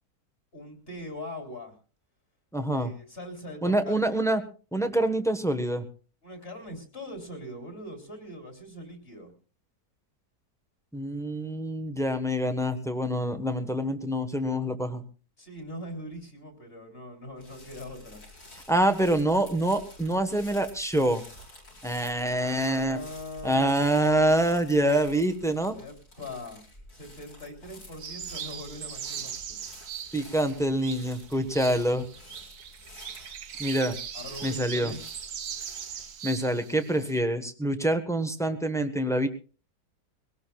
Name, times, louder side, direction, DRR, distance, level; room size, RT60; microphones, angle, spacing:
voice 1, 0.5-1.8 2.7-4.2 6.2-9.3 15.4-18.2 22.3-24.1 25.7-26.6 26.9-29.6 34.1-35.0, left 1 dB, 35° left, 2 dB, 3.5 m, -42 dB
voice 2, 2.5-2.9 3.6-4.4 4.7-5.8 10.9-15.0 18.7-21.2 21.8-23.0 23.4-25.8 30.1-32.1 33.6-34.0 34.4-34.9 36.2-39.3, right 1 dB, ahead, 8 dB, 0.9 m, -26 dB
sound 1, 17.4-36.1, left 1 dB, 65° left, 5.6 m, -50 dB
sound 2, 28.0-37.2, right 8 dB, 70° right, 1.5 m, -40 dB
22.0 x 18.0 x 2.4 m, 0.36 s
omnidirectional pair, 1.8 m